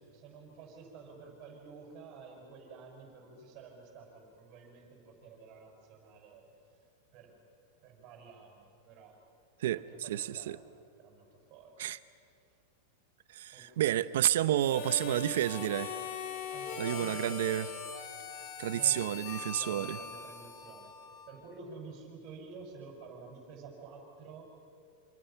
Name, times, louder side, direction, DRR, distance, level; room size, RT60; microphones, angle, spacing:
voice 1, 0.1-6.4 7.1-7.4 7.8-9.1 9.8-10.6 11.0-11.7 13.5-14.0 16.5-17.7 18.7-24.5, right 4 dB, 30° right, 1 dB, 6.5 m, -51 dB
voice 2, 9.6-10.6 11.8-12.0 13.3-16.0 16.8-17.7 18.6-20.0, right 12 dB, 65° right, 14 dB, 0.8 m, -30 dB
Harmonica, 14.6-21.5, left 6 dB, 40° left, 2.3 m, -41 dB
27.5 x 27.0 x 5.9 m, 2.5 s
supercardioid pair, 175°, 0 cm